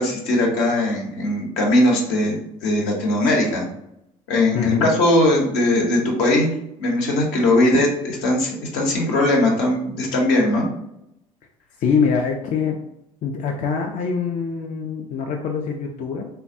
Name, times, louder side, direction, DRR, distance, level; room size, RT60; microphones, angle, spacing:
voice 1, 0.0-3.7 4.3-6.5 6.8-10.7, left 1 dB, 70° left, -1 dB, 0.8 m, -19 dB
voice 2, 4.5-4.9 11.8-12.8 13.2-16.3, left 5 dB, 45° left, 2 dB, 0.4 m, -24 dB
3.4 x 2.2 x 2.6 m, 0.81 s
hypercardioid pair, 60°, 18 cm